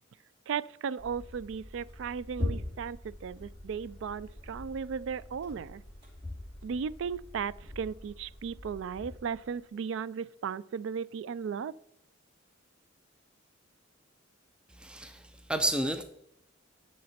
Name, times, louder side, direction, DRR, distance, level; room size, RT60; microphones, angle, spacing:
voice 1, 0.5-5.8 6.6-11.7, right 6 dB, 65° right, 0.3 m, -36 dB
sound 1, 1.0-9.6, left 1 dB, 30° right, 3.9 m, -42 dB
voice 2, 14.8-15.2 15.5-16.0, right 1 dB, 5° right, 0.5 m, -30 dB
10.5 x 6.7 x 4.3 m
head